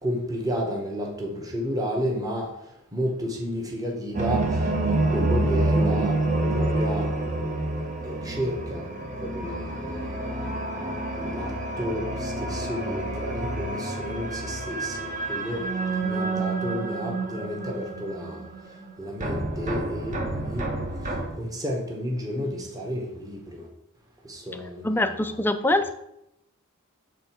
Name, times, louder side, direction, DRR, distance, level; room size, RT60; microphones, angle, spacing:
voice 1, 0.0-2.5 2.9-6.2 6.5-7.1 8.0-8.8 9.2-10.5 11.1-15.6 15.9-20.7 21.0-23.7 24.2-25.1, equal, 15° right, -1 dB, 1.1 m, -32 dB
sound 1, 4.1-18.9 19.2-21.3, right 2 dB, 35° right, 1.0 m, -28 dB
voice 2, 24.8-25.9, left 1 dB, 10° left, 9 dB, 0.4 m, -23 dB
7.7 x 3.7 x 4.4 m, 0.80 s
head